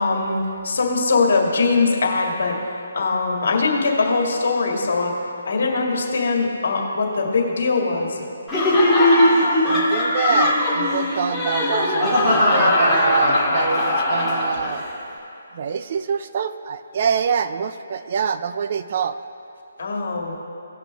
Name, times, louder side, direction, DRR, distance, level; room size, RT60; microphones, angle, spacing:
voice 1, 0.0-2.6 2.9-5.1 5.5-8.2 19.8-20.3, left 3 dB, 65° left, 0 dB, 2.1 m, -21 dB
Laughter, 8.5-14.8, left 1 dB, 5° left, 1.9 m, -19 dB
voice 2, 9.7-14.8 15.5-19.2, right 7 dB, 40° right, 11 dB, 0.4 m, -25 dB
17.5 x 6.0 x 3.5 m, 2.7 s
hypercardioid pair, 160°, 0 cm